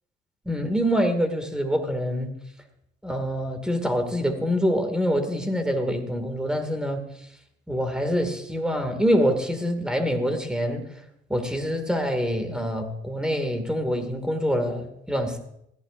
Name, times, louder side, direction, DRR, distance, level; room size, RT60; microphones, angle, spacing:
voice 1, 0.5-2.3 3.0-7.0 7.7-10.9 11.3-15.4, equal, 5° right, 6 dB, 2.3 m, -25 dB
21.0 x 14.5 x 2.6 m, 0.77 s
cardioid pair, 110°, 17 cm